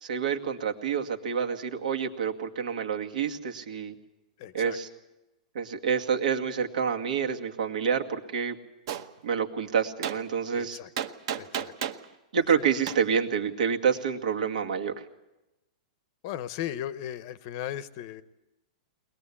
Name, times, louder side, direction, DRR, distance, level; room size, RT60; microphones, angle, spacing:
voice 1, 0.0-3.9 4.5-4.9 5.5-8.6 9.2-10.8 12.3-14.9, right 6 dB, 75° right, 4 dB, 2.2 m, -28 dB
voice 2, 4.4-4.8 10.5-10.9 11.4-11.7 12.5-12.6 16.2-18.2, left 11 dB, 30° left, 15 dB, 0.7 m, -36 dB
Gunshot gunfire, 8.9-9.1 10.0-10.2 11.0-12.0 12.9-13.0, right 9 dB, 40° right, 1.0 m, -31 dB
22.5 x 20.0 x 8.5 m, 0.98 s
supercardioid pair, 180°, 4 cm